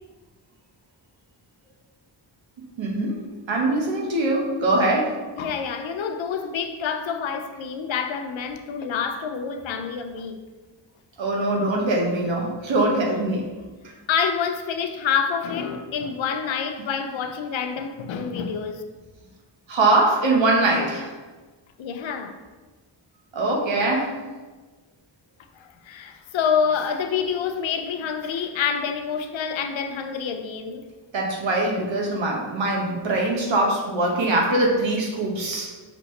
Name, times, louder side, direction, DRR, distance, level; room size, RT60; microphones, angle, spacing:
voice 1, 2.8-5.2 11.2-13.5 19.7-21.1 23.3-24.2 31.1-35.7, right 2 dB, 70° right, 1.0 m, -22 dB
voice 2, 5.4-10.4 14.1-18.8 21.8-22.4 25.6-30.9, left 6 dB, 75° left, 0.6 m, -27 dB
5.2 x 2.8 x 3.2 m
cardioid pair, 70°, 47 cm